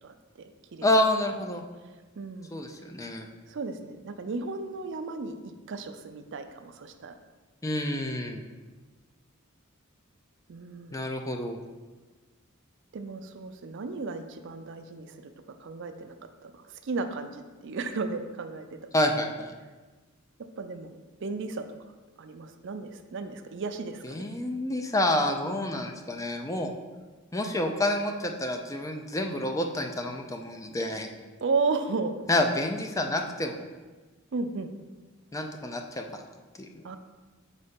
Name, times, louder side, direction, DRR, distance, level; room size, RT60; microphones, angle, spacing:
voice 1, 0.0-0.9 2.2-2.6 3.5-5.4 5.7-7.2 10.5-11.0 12.9-15.3 15.6-16.2 16.4-18.8 20.6-24.3 31.4-32.1 34.3-34.7 36.8-37.0, right 4 dB, 60° right, 8 dB, 0.5 m, -34 dB
voice 2, 0.8-1.6 2.5-3.3 7.6-8.4 10.9-11.6 18.9-19.5 24.0-26.7 27.3-31.1 32.3-33.6 35.3-36.2 36.6-36.8, left 1 dB, 15° left, 4 dB, 0.4 m, -28 dB
4.6 x 4.1 x 5.1 m, 1.3 s
head